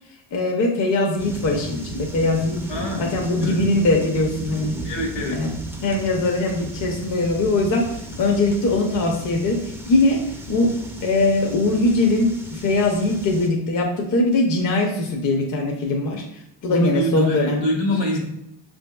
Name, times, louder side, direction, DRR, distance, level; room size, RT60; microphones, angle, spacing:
voice 1, 0.1-2.6 3.0-4.8 5.3-5.6 5.8-10.7 11.0-17.7, left 2 dB, 45° left, 0 dB, 0.7 m, -21 dB
sound 1, 1.2-13.5, right 1 dB, 5° right, 0.4 m, -35 dB
voice 2, 2.7-3.1 3.4-3.6 4.8-5.4 16.7-18.2, equal, 70° left, 0 dB, 1.3 m, -25 dB
5.0 x 2.7 x 2.2 m, 0.82 s
cardioid pair, 100°, 46 cm